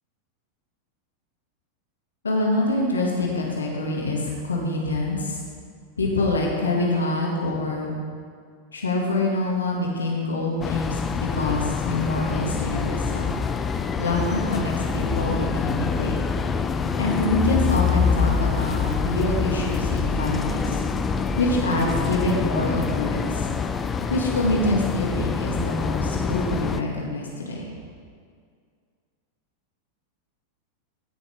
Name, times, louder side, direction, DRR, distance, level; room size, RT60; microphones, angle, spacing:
voice 1, 2.2-5.4 6.0-7.9 8.7-13.3 14.0-16.2 17.0-20.8 21.4-23.4 24.1-27.7, left 2 dB, 75° left, -2 dB, 2.2 m, -25 dB
sound 1, 10.6-26.8, left 5 dB, 20° left, 0.6 m, -25 dB
17.0 x 6.5 x 4.9 m, 2.1 s
figure-of-eight pair, 90°, 0 cm